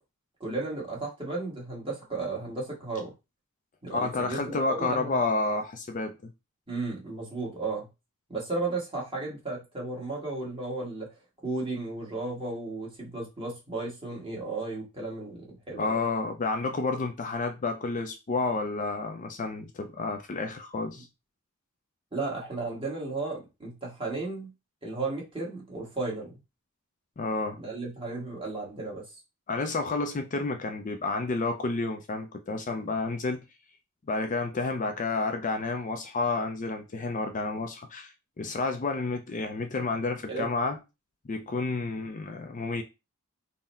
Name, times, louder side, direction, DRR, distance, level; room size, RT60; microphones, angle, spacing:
voice 1, 0.4-3.1 3.8-5.2 6.7-7.9 8.3-11.1 11.4-16.0 22.1-24.5 24.8-26.4 27.6-29.0 40.3-40.5, right 3 dB, 25° right, 1.4 m, -34 dB
voice 2, 3.9-6.3 15.8-21.1 27.2-27.6 29.5-33.4 34.1-38.1 38.4-40.8 41.3-42.8, left 3 dB, 35° left, 0.4 m, -30 dB
3.8 x 2.1 x 4.1 m
head